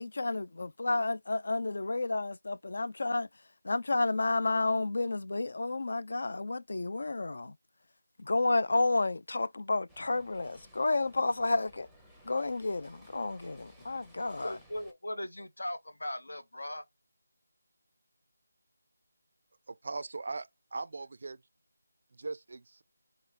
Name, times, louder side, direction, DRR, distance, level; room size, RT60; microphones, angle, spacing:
voice 1, 0.0-3.3 3.6-7.5 8.2-11.9 12.2-14.6, left 2 dB, 60° left, 0.3 m, -31 dB
sound 1, 9.9-14.9, equal, ahead, 0.6 m, -59 dB
voice 2, 14.4-16.8, left 1 dB, 85° left, 0.8 m, -39 dB
voice 3, 19.7-21.4 22.1-22.8, right 3 dB, 50° right, 0.3 m, -40 dB
4.1 x 2.7 x 3.3 m
figure-of-eight pair, 170°, 0 cm